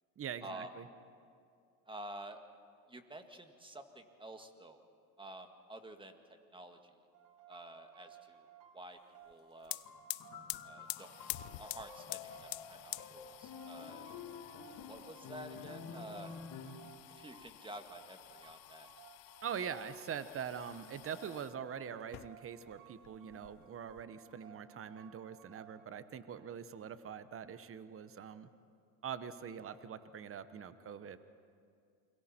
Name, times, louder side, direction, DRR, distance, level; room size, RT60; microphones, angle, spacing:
voice 1, 0.2-0.8 19.4-28.5 29.0-31.2, right 7 dB, 35° right, 12 dB, 1.1 m, -43 dB
voice 2, 1.9-2.4 2.9-4.8 5.2-6.2 6.5-6.9 7.5-8.5 8.7-9.0 9.3-9.8 10.6-14.1 14.9-16.3 17.1-18.9, right 1 dB, 10° right, 6 dB, 1.9 m, -50 dB
sound 1, 7.1-25.9, right 10 dB, 50° right, 2.2 m, -60 dB
sound 2, 9.3-9.4 9.6-21.6 22.0-22.8 23.0-24.0, left 24 dB, 75° left, 0.6 m, -48 dB
sound 3, 9.9-16.9, left 6 dB, 55° left, 3.2 m, -50 dB
29.0 x 22.0 x 4.4 m, 2.3 s
supercardioid pair, 90°, 40 cm